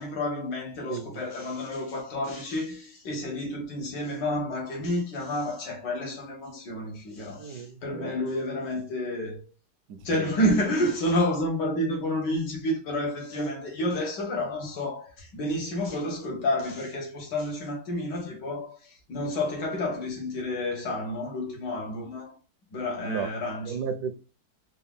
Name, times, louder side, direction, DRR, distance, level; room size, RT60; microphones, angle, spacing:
voice 1, 0.0-9.5 10.0-22.4 22.7-23.8, left 1 dB, 80° left, 1.9 m, -30 dB
voice 2, 0.9-1.2 7.4-8.1 9.9-10.0 23.0-23.3 23.7-24.2, right 6 dB, 75° right, 1.1 m, -33 dB
4.6 x 2.3 x 3.6 m
omnidirectional pair, 1.9 m